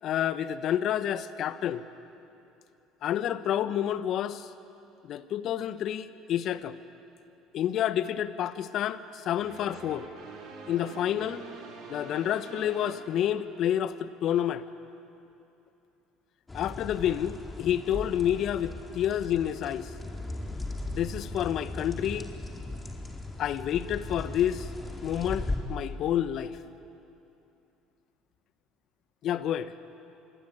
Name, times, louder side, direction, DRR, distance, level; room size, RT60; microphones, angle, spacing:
voice 1, 0.0-1.9 3.0-4.5 5.0-6.8 7.5-10.1 10.7-11.4 11.9-14.6 16.5-19.9 20.9-22.3 23.4-24.7 25.0-26.6 29.2-29.7, left 10 dB, 55° left, 13 dB, 1.2 m, -29 dB
sound 1, 9.4-13.9, right 4 dB, 60° right, 4.8 m, -46 dB
sound 2, 16.5-25.6, left 2 dB, 20° left, 4.3 m, -38 dB
27.0 x 22.5 x 9.0 m, 2.8 s
hypercardioid pair, 65°, 0 cm